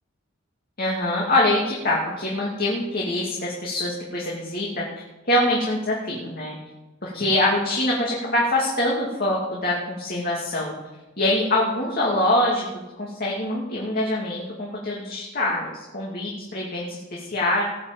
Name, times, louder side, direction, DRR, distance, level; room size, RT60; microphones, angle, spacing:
voice 1, 0.8-6.6 7.0-10.8 11.2-17.6, left 1 dB, 45° left, -4 dB, 2.5 m, -24 dB
18.5 x 6.3 x 7.7 m, 1.1 s
head